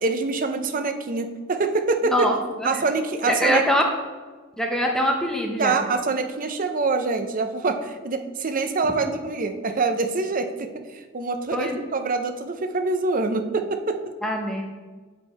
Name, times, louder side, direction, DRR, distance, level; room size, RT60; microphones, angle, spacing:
voice 1, 0.0-2.3 2.6-3.6 5.6-14.0, right 3 dB, 40° right, 7 dB, 0.6 m, -25 dB
voice 2, 2.0-2.8 3.3-3.9 4.6-5.8 9.0-9.1 11.5-11.8 14.2-14.6, equal, 5° left, 1 dB, 0.7 m, -23 dB
7.3 x 4.5 x 4.2 m, 1.3 s
head